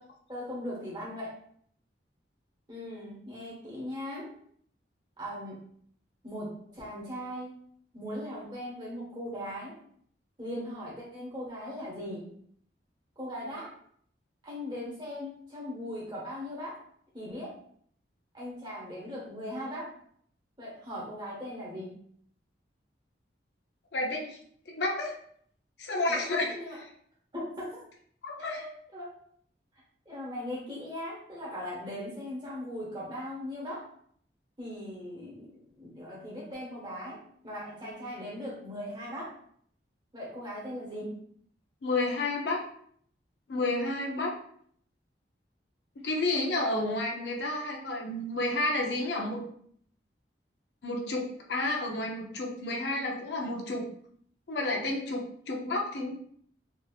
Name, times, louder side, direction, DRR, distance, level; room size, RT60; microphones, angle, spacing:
voice 1, 0.3-1.3 2.7-4.3 5.2-5.6 6.2-7.5 7.9-9.8 10.4-12.2 13.2-13.7 14.4-16.8 17.1-17.6 18.3-19.9 20.6-21.9 26.1-26.8 27.3-27.8 28.4-29.1 30.0-33.9 34.6-35.5 35.8-37.2 37.4-39.3 40.1-41.1, equal, 25° right, -6 dB, 1.2 m, -39 dB
voice 2, 23.9-24.4 24.7-25.1 25.8-26.5 28.2-28.6 41.8-42.6 43.5-44.3 46.0-49.4 50.8-53.9 54.5-56.2, left 2 dB, 70° left, 0 dB, 0.6 m, -31 dB
3.5 x 2.8 x 2.3 m, 0.62 s
head